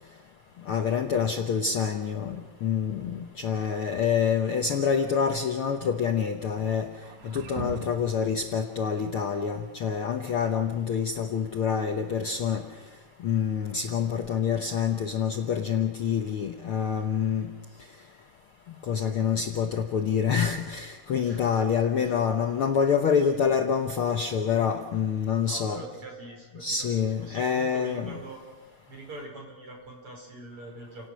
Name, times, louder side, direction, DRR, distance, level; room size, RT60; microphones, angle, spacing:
voice 1, 0.7-6.9 7.2-12.6 13.2-17.5 18.8-25.8 26.6-28.1, left 7 dB, 80° left, 4 dB, 1.2 m, -27 dB
sound 1, 4.6-5.5 6.9-8.2, right 5 dB, 65° right, 2.6 m, -41 dB
voice 2, 21.2-21.5 22.0-22.1 23.1-23.4 25.4-28.4 28.9-31.1, right 2 dB, 40° right, 1 dB, 5.8 m, -44 dB
30.0 x 18.0 x 6.3 m, 1.2 s
omnidirectional pair, 4.0 m